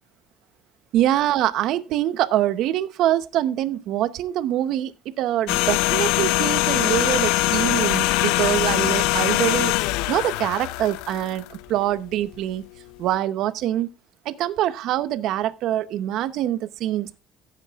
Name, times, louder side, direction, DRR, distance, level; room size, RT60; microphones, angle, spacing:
voice 1, 0.9-4.9 5.2-12.6 13.0-13.9 14.2-17.2, right 12 dB, 55° right, 0.7 m, -24 dB
sound 1, 5.5-11.8 12.1-12.3, left 18 dB, 90° left, 0.5 m, -22 dB
15.0 x 9.0 x 2.3 m
cardioid pair, 165°, 0 cm